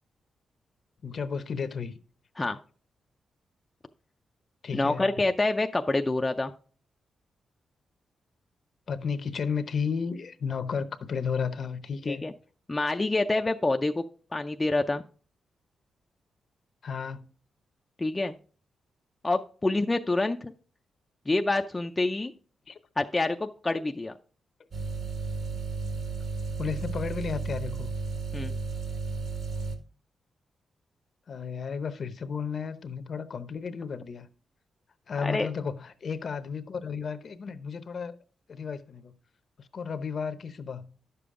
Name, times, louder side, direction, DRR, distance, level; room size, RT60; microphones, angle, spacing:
voice 1, 1.0-2.0 4.6-5.1 8.9-12.2 16.8-17.3 22.7-22.8 26.6-27.9 31.3-34.3 35.1-38.2 38.5-39.1 39.6-41.0, left 6 dB, 50° left, 0.7 m, -33 dB
voice 2, 4.7-6.5 12.1-12.3 12.7-14.0 14.3-15.0 18.0-18.3 19.2-20.5 21.3-22.3 23.0-24.1 28.3-28.5 35.2-35.5, left 2 dB, 20° left, 0.4 m, -27 dB
sound 1, 24.7-29.7, right 4 dB, 55° right, 1.6 m, -33 dB
11.0 x 6.9 x 3.7 m
wide cardioid pair, 130°, 0 cm